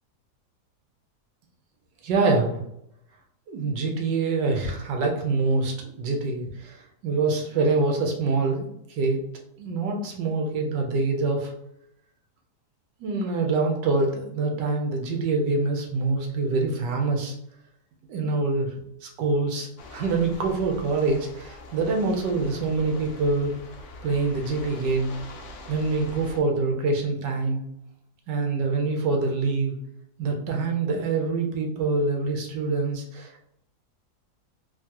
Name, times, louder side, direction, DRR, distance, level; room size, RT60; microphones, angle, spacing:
voice 1, 2.0-2.6 3.5-9.3 9.6-11.5 13.0-17.4 18.1-18.7 19.0-23.5 24.0-25.1 25.7-27.6 28.3-29.7 30.2-33.4, right 3 dB, 80° right, 2 dB, 1.3 m, -25 dB
sound 1, 19.8-26.4, left 2 dB, 90° left, 0.6 m, -43 dB
3.6 x 2.2 x 2.8 m, 0.76 s
omnidirectional pair, 1.9 m